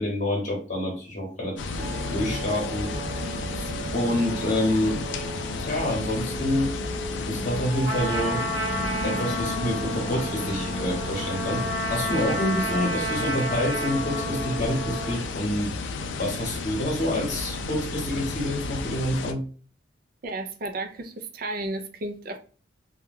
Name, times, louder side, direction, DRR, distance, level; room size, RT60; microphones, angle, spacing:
voice 1, 0.0-1.9 2.1-2.9 3.6-5.0 5.6-6.7 7.3-8.4 9.0-11.6 11.9-15.7 16.2-19.4, left 1 dB, 45° left, -1 dB, 0.9 m, -27 dB
sound 1, 1.6-19.3, left 4 dB, 75° left, 0.4 m, -33 dB
sound 2, 1.8-15.3, right 2 dB, 10° right, 0.7 m, -38 dB
Trumpet, 7.9-15.2, right 1 dB, 85° right, 0.8 m, -31 dB
voice 2, 20.2-22.4, right 2 dB, 50° right, 6 dB, 0.4 m, -33 dB
2.3 x 2.2 x 3.2 m, 0.40 s
head